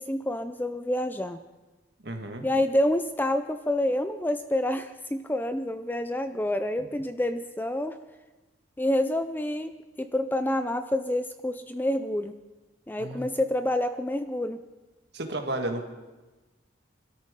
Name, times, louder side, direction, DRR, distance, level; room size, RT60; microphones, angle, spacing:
voice 1, 0.0-1.4 2.4-8.0 8.8-12.3 12.9-14.6, left 1 dB, 10° left, 10 dB, 0.4 m, -28 dB
voice 2, 2.0-2.4 13.0-13.3 15.1-15.9, right 1 dB, 55° right, 4 dB, 1.7 m, -32 dB
21.5 x 13.0 x 3.7 m, 1.2 s
head